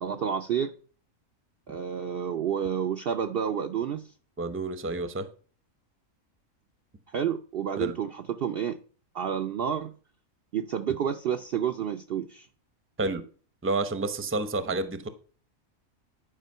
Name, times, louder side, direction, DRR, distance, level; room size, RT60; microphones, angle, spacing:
voice 1, 0.0-0.7 1.7-4.0 7.1-8.8 9.1-9.9 10.5-12.5, right 8 dB, 60° right, 0.6 m, -29 dB
voice 2, 4.4-5.3 7.8-7.9 13.0-13.2 13.6-15.1, right 2 dB, 15° right, 0.6 m, -29 dB
11.0 x 5.1 x 5.4 m
omnidirectional pair, 1.5 m